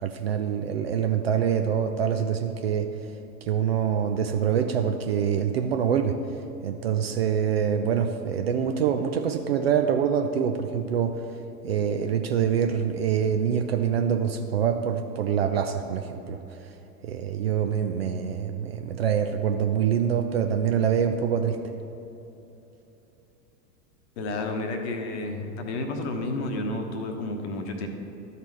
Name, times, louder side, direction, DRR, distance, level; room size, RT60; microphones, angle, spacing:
voice 1, 0.0-2.9 3.5-6.2 6.6-11.2 11.6-16.4 17.0-21.6, right 8 dB, 40° right, 6 dB, 0.4 m, -25 dB
voice 2, 24.2-27.9, left 2 dB, 40° left, 4 dB, 1.1 m, -31 dB
12.5 x 4.2 x 4.5 m, 3.0 s
figure-of-eight pair, 95°, 49 cm